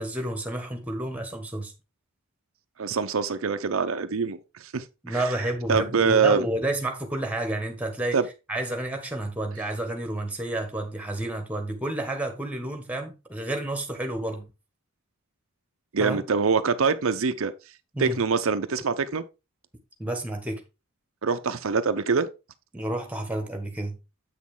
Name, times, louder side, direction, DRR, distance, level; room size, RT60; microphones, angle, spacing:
voice 1, 0.0-1.7 5.0-8.2 8.5-14.5 16.0-16.2 17.9-18.2 20.0-20.6 22.7-24.0, right 1 dB, 5° right, 1.4 m, -30 dB
voice 2, 2.8-5.3 5.7-6.5 8.1-8.3 15.9-17.5 18.0-19.2 21.2-22.3, right 5 dB, 70° right, 0.6 m, -24 dB
8.2 x 6.2 x 3.7 m
head